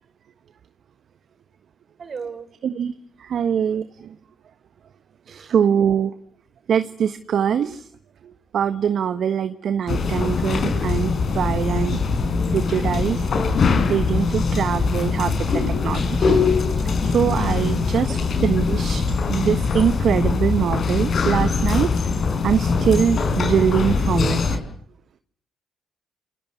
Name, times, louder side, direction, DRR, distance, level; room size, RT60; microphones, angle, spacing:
voice 1, 2.0-2.5 5.3-5.6 16.7-17.0 17.9-18.2, right 5 dB, 45° right, 8 dB, 5.9 m, -37 dB
voice 2, 2.6-2.9 3.2-3.9 5.3-6.1 6.7-7.8 8.5-12.0 12.5-13.3 13.9-16.4 17.0-19.0 19.3-21.9 22.4-24.6, right 8 dB, 60° right, 10 dB, 1.4 m, -23 dB
sound 1, 9.9-24.6, left 4 dB, 55° left, 5.7 m, -22 dB
28.5 x 24.5 x 8.5 m, 0.62 s
supercardioid pair, 55°, 0 cm